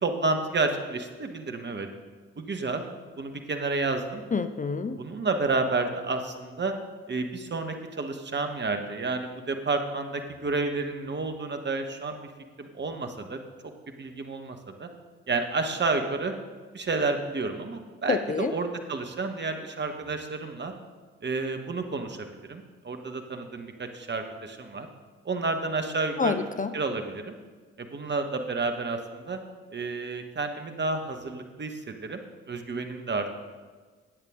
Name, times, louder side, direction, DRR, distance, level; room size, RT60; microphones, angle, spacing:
voice 1, 0.0-1.9 2.4-2.8 3.2-4.2 5.0-6.7 7.1-12.2 12.6-13.4 14.0-14.9 15.3-16.3 16.7-20.7 21.2-24.9 25.2-26.4 26.7-27.3 27.8-29.4 29.7-32.2 32.5-33.3, right 3 dB, 35° right, 5 dB, 1.5 m, -30 dB
voice 2, 4.3-5.0 18.1-18.5 26.2-26.7, left 5 dB, 25° left, 10 dB, 0.6 m, -27 dB
13.5 x 9.0 x 3.8 m, 1.4 s
hypercardioid pair, 40°, 30 cm